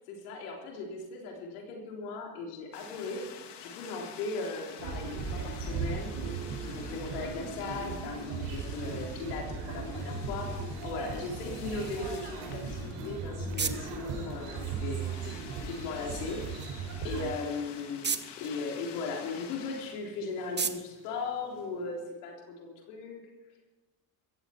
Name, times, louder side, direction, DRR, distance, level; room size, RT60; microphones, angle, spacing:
voice 1, 0.1-3.2 3.6-6.1 6.6-23.2, left 4 dB, 85° left, 0 dB, 3.6 m, -38 dB
sound 1, 2.7-21.7, left 8 dB, 60° left, 2.4 m, -50 dB
sound 2, 4.8-17.3, right 4 dB, 70° right, 5.8 m, -37 dB
sound 3, 12.8-22.2, right 5 dB, 25° right, 1.3 m, -41 dB
15.5 x 15.0 x 4.4 m, 1.2 s
supercardioid pair, 75°, 45 cm